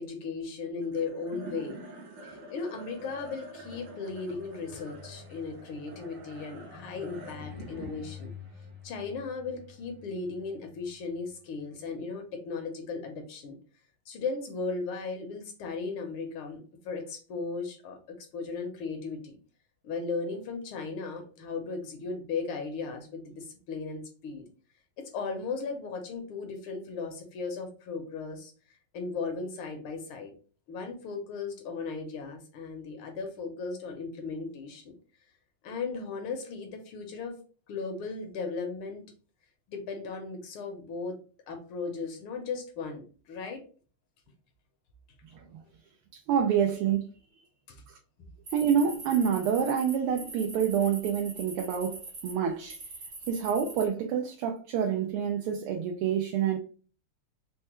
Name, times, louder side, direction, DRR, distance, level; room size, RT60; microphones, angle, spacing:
voice 1, 0.0-1.8 2.2-8.3 8.8-13.5 14.1-19.4 19.8-24.4 25.0-28.5 28.9-30.3 30.7-34.9 35.6-37.4 37.7-39.0 39.7-41.2 41.5-43.6 47.7-47.8, left 4 dB, 75° left, 1.6 m, -36 dB
sound 1, 0.8-11.3, left 1 dB, 65° right, 1.4 m, -46 dB
voice 2, 46.3-47.1 48.5-52.8 53.3-56.6, right 8 dB, 85° right, 1.5 m, -27 dB
sound 2, 48.5-52.3 52.7-53.9, right 3 dB, 40° right, 0.9 m, -43 dB
4.5 x 2.2 x 2.9 m
omnidirectional pair, 2.4 m